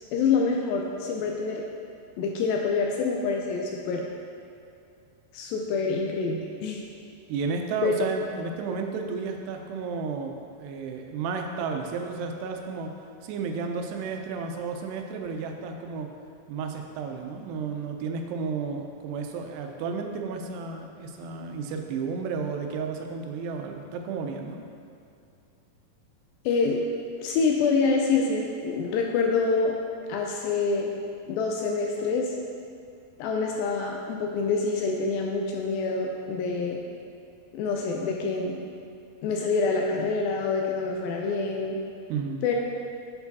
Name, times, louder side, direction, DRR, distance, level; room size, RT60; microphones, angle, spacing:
voice 1, 0.1-1.6 2.2-4.1 5.3-6.8 7.8-8.1 26.5-26.8 27.2-29.7 30.1-30.9 31.3-32.3 33.2-36.8 37.5-38.6 39.2-41.8 42.4-42.6, left 4 dB, 85° left, 0 dB, 2.1 m, -26 dB
voice 2, 7.3-10.3 10.6-12.9 13.2-16.1 16.5-24.6 42.1-42.4, right 5 dB, 90° right, 4 dB, 2.7 m, -32 dB
7.7 x 4.6 x 4.0 m, 2.5 s
omnidirectional pair, 4.6 m